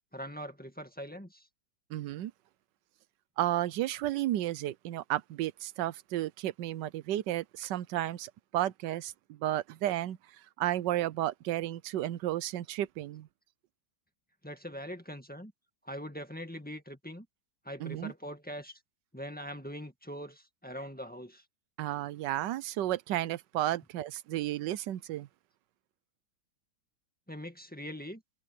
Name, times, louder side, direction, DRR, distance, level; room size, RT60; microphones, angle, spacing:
voice 1, 0.1-1.5 14.4-15.5 15.8-17.3 17.7-18.8 19.1-21.4 27.3-28.2, equal, 5° left, 1.7 m, -42 dB
voice 2, 1.9-2.3 3.4-10.2 10.6-13.3 17.8-18.1 21.8-25.3, right 13 dB, 85° right, 1.3 m, -33 dB
omnidirectional pair, 1.8 m